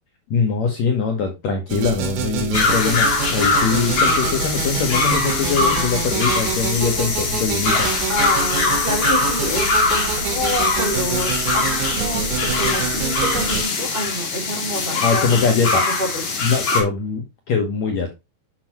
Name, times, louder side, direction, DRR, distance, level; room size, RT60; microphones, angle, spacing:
voice 1, 0.3-7.9 15.0-15.8 16.4-18.1, left 5 dB, 90° left, 3 dB, 1.5 m, -22 dB
sound 1, 1.7-13.6, right 6 dB, 80° right, 3.7 m, -27 dB
sound 2, 2.5-16.8, left 3 dB, 45° left, 2.6 m, -22 dB
voice 2, 8.1-16.2, equal, 15° right, -2 dB, 2.6 m, -28 dB
7.6 x 5.9 x 2.9 m, 0.23 s
omnidirectional pair, 5.0 m